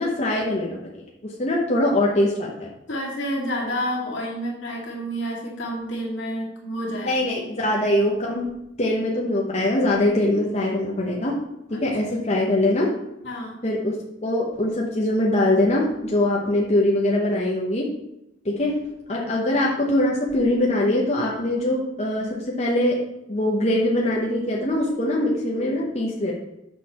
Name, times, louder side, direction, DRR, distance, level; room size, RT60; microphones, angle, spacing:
voice 1, 0.0-2.7 7.0-8.4 8.8-11.4 11.7-12.9 13.6-14.0 14.2-17.9 18.4-18.8 19.1-23.0 23.3-26.3, left 1 dB, 35° left, -3 dB, 1.0 m, -22 dB
voice 2, 2.9-7.2 11.7-11.8 13.2-13.6 19.1-19.3, equal, 70° left, -3 dB, 2.2 m, -29 dB
6.5 x 6.3 x 4.2 m, 0.87 s
head